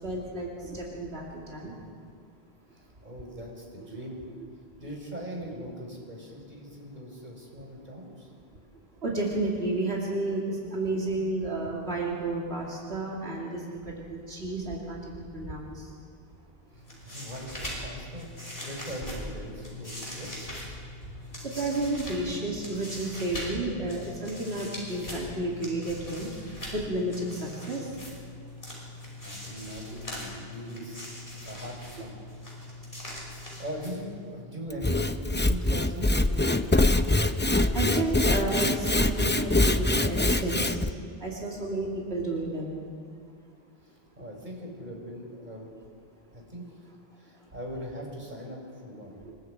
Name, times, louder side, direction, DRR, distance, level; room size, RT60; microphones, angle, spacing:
voice 1, 0.0-1.7 9.0-15.8 21.4-26.3 26.7-27.9 37.7-40.8 41.2-42.8 49.2-49.3, right 2 dB, 85° right, -3 dB, 3.0 m, -31 dB
voice 2, 2.7-4.2 4.8-8.3 16.7-20.3 28.9-31.1 31.4-32.1 33.6-36.7 43.8-45.7 46.3-46.6 47.2-49.2, equal, 45° right, -1 dB, 4.9 m, -41 dB
sound 1, 16.7-34.3, left 1 dB, 60° left, 5.9 m, -41 dB
Sawing / Wood, 34.7-40.9, left 2 dB, 15° left, 0.6 m, -24 dB
27.0 x 23.5 x 4.9 m, 2.1 s
omnidirectional pair, 1.0 m